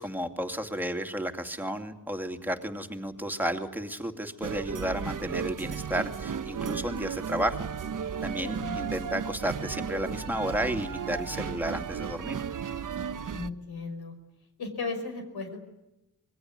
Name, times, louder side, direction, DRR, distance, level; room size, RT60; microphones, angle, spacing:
voice 1, 0.0-7.7 8.2-12.4, equal, 5° right, 5 dB, 2.6 m, -32 dB
sound 1, 4.4-13.5, right 7 dB, 55° right, 1.2 m, -34 dB
voice 2, 8.4-8.9 13.3-14.1 14.6-15.6, left 3 dB, 75° left, 5 dB, 5.5 m, -36 dB
26.0 x 21.5 x 9.6 m, 0.93 s
wide cardioid pair, 115°, 38 cm